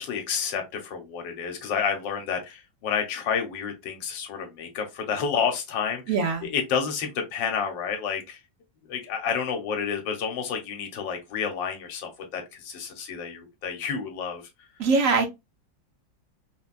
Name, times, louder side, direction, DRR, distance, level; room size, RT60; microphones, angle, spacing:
voice 1, 0.0-6.0 6.5-8.4 8.9-14.4, left 6 dB, 75° left, 1.5 m, -30 dB
voice 2, 6.1-6.5 14.8-15.3, right 4 dB, 65° right, 0.8 m, -22 dB
3.6 x 2.2 x 2.3 m
omnidirectional pair, 2.1 m